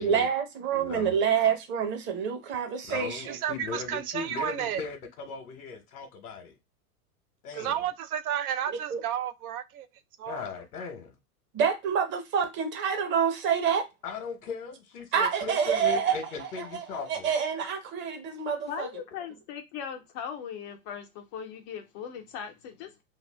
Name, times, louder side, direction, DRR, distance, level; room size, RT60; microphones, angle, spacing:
voice 1, 0.0-3.4 8.9-9.0 11.5-13.9 15.1-16.8 17.1-18.9, right 7 dB, 25° right, 0.8 m, -27 dB
voice 2, 0.7-1.2 2.9-6.5 7.4-7.8 10.3-11.2 14.0-17.3, left 5 dB, 80° left, 1.0 m, -38 dB
voice 3, 3.2-4.8 7.5-9.9 10.2-10.4, right 10 dB, 75° right, 0.6 m, -32 dB
voice 4, 18.7-23.0, left 7 dB, 30° left, 0.4 m, -39 dB
2.7 x 2.2 x 3.3 m
hypercardioid pair, 125°, 44 cm